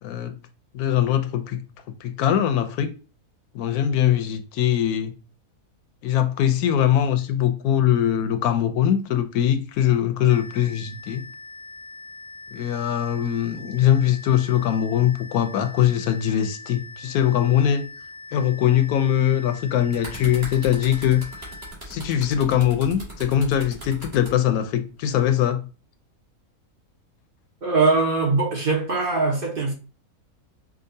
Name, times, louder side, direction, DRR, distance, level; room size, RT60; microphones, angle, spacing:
voice 1, 0.0-0.4 0.7-1.6 2.0-2.9 3.5-5.1 6.0-11.2 12.5-17.9 18.3-21.2 21.9-25.6, left 10 dB, 85° left, 1.1 m, -21 dB
sound 1, 10.3-21.7, left 3 dB, 55° left, 0.5 m, -42 dB
sound 2, 19.6-24.3 25.2-25.4, right 1 dB, 25° right, 1.7 m, -39 dB
voice 2, 27.6-29.7, right 3 dB, 45° right, 0.9 m, -21 dB
5.0 x 2.3 x 2.6 m
omnidirectional pair, 1.6 m